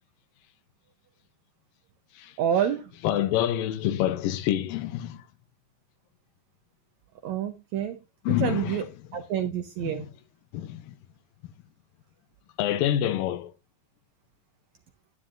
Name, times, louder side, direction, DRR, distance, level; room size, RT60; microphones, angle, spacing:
voice 1, 2.4-2.9 7.2-8.0 8.3-8.8 9.1-10.1, right 9 dB, 75° right, 1.7 m, -28 dB
voice 2, 3.0-5.2 8.3-8.8 9.8-9.9 10.5-10.9 12.6-13.5, left 12 dB, 80° left, 2.4 m, -27 dB
11.5 x 9.5 x 2.5 m
omnidirectional pair, 4.1 m